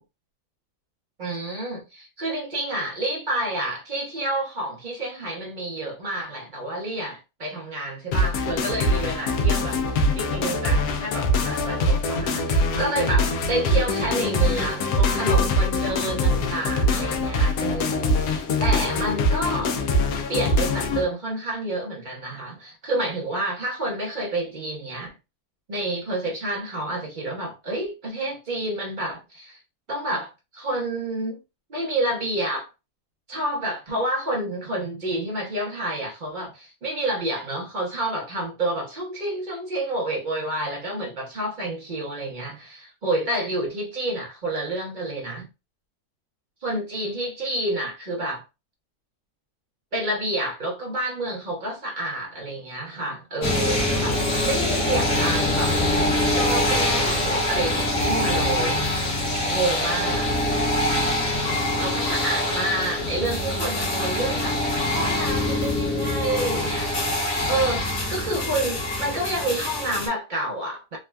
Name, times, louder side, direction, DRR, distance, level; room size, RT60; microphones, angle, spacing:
voice 1, 1.2-19.8 20.3-25.1 25.7-29.6 29.9-31.4 31.7-32.7 33.3-45.5 46.6-48.4 49.9-55.8 56.3-58.8 59.5-60.3 61.8-67.1 67.5-71.0, right 1 dB, 55° right, 0.5 m, -29 dB
sound 1, 8.1-21.0, left 1 dB, 75° left, 1.1 m, -23 dB
sound 2, 53.4-70.1, left 1 dB, 55° left, 1.5 m, -24 dB
3.4 x 2.2 x 2.2 m
omnidirectional pair, 1.8 m